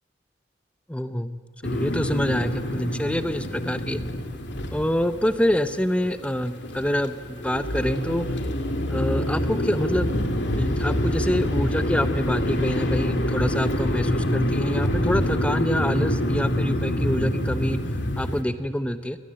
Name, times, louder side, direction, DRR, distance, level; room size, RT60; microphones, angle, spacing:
voice 1, 0.9-1.4 1.6-4.0 4.7-8.2 8.9-17.8 18.2-19.2, equal, 5° left, 11 dB, 0.8 m, -26 dB
sound 1, 1.6-18.4, left 1 dB, 70° left, 2.2 m, -26 dB
23.0 x 18.5 x 7.7 m, 2.1 s
head